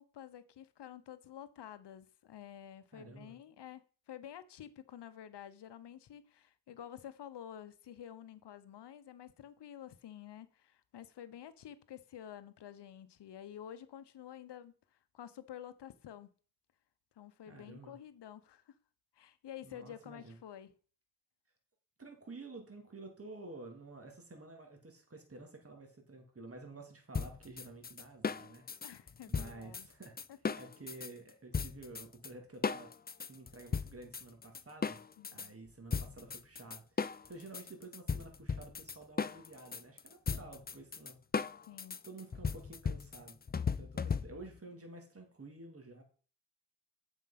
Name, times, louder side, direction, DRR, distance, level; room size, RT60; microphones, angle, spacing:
voice 1, 0.0-3.8 4.1-16.3 17.2-18.8 19.1-20.7 28.8-29.9 30.3-30.5 35.2-35.5 41.7-42.0, left 10 dB, 70° left, 1.0 m, -50 dB
voice 2, 2.9-3.3 17.5-17.9 19.6-20.4 22.0-28.6 29.3-30.2 30.5-32.9 33.2-35.0 35.3-41.2 42.0-43.4 43.8-46.0, right 2 dB, 30° right, 2.7 m, -51 dB
sound 1, 27.1-31.1 31.5-32.3 32.6-35.5 35.9-44.6, left 5 dB, 20° left, 0.5 m, -37 dB
7.5 x 6.2 x 5.9 m
cardioid pair, 55°, 43 cm